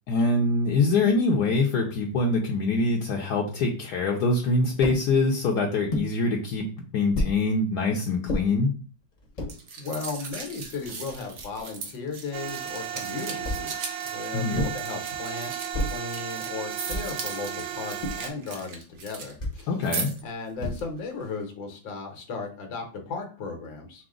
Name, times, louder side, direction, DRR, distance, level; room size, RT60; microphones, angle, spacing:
voice 1, 0.1-6.6 6.9-8.7 14.3-14.6 19.7-20.1, left 3 dB, 70° left, 0 dB, 1.1 m, -24 dB
sound 1, 4.8-5.0 5.9-6.1 7.1-7.4 8.3-8.5 9.2-9.5 10.3-10.4 10.6-11.6 13.4-13.8 14.5-14.9 15.7-16.1 16.9-17.2 18.0-18.4 19.4-19.6 20.6-21.0, left 1 dB, 35° left, 0.7 m, -31 dB
sound 2, 9.5-19.3 19.6-20.3 20.7-20.8, right 4 dB, 55° right, 0.8 m, -38 dB
voice 2, 9.8-15.5 15.8-19.7 20.2-24.1, left 4 dB, 85° left, 2 dB, 1.7 m, -36 dB
sound 3, 12.3-18.3, right 9 dB, 85° right, 1.5 m, -35 dB
5.8 x 2.1 x 3.7 m, 0.38 s
omnidirectional pair, 2.0 m